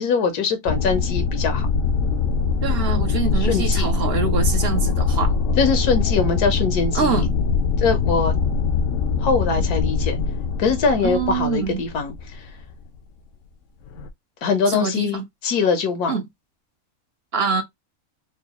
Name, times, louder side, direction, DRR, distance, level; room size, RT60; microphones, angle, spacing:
voice 1, 0.0-1.7 3.4-3.9 5.6-7.3 7.8-8.3 9.2-10.2 10.6-12.1 14.4-16.2, left 5 dB, 85° left, 1.4 m, -22 dB
sound 1, 0.7-12.7 13.9-14.1, left 4 dB, 70° left, 0.8 m, -22 dB
voice 2, 2.6-5.3 6.9-7.3 11.0-11.8 14.7-15.2 16.1-16.2 17.3-17.6, right 5 dB, 55° right, 0.8 m, -24 dB
4.5 x 2.3 x 2.9 m
omnidirectional pair, 1.6 m